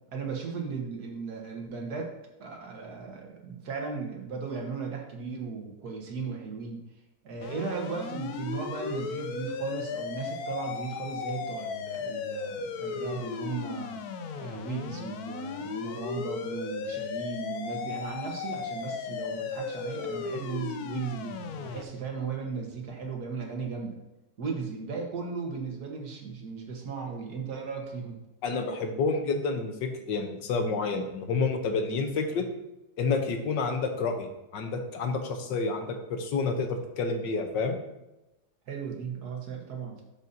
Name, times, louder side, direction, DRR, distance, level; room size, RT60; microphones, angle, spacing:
voice 1, 0.1-2.1 2.4-6.8 7.2-14.0 14.3-24.0 24.4-28.2 38.7-40.0, right 5 dB, 65° right, 1 dB, 1.8 m, -36 dB
sound 1, 7.4-21.8, left 5 dB, 70° left, 1.1 m, -36 dB
voice 2, 28.4-32.5 33.0-37.8, left 4 dB, 85° left, 5 dB, 1.6 m, -29 dB
12.0 x 5.4 x 2.8 m, 0.97 s
omnidirectional pair, 1.9 m